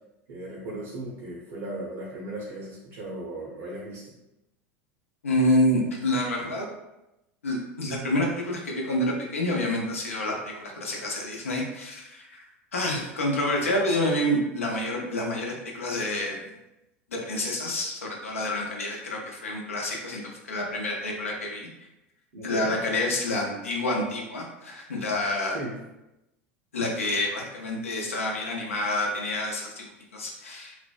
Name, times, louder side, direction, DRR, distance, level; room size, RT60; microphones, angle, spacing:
voice 1, 0.3-4.2 22.3-22.8 25.5-25.8, right 1 dB, 65° right, -5 dB, 0.8 m, -37 dB
voice 2, 5.2-6.7 7.4-12.4 12.7-16.4 17.1-20.2 20.5-21.7 22.4-25.6 26.7-30.8, left 1 dB, 90° left, -1 dB, 0.6 m, -28 dB
3.2 x 2.1 x 2.3 m, 0.91 s
hypercardioid pair, 85°, 7 cm